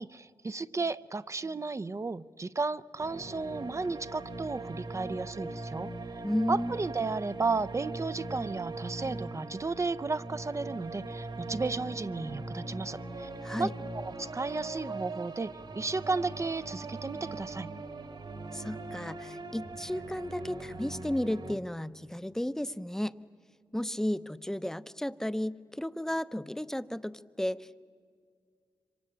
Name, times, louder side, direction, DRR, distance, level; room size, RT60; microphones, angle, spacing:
voice 1, 0.0-6.2 6.5-13.3 13.6-17.7, right 3 dB, 35° right, 14 dB, 0.6 m, -34 dB
sound 1, 3.0-21.6, right 2 dB, 60° right, 2.3 m, -40 dB
voice 2, 6.2-6.7 13.4-13.7 18.5-23.1 23.7-27.8, left 1 dB, 5° left, 13 dB, 0.8 m, -33 dB
26.0 x 24.5 x 8.8 m, 2.1 s
cardioid pair, 60°, 9 cm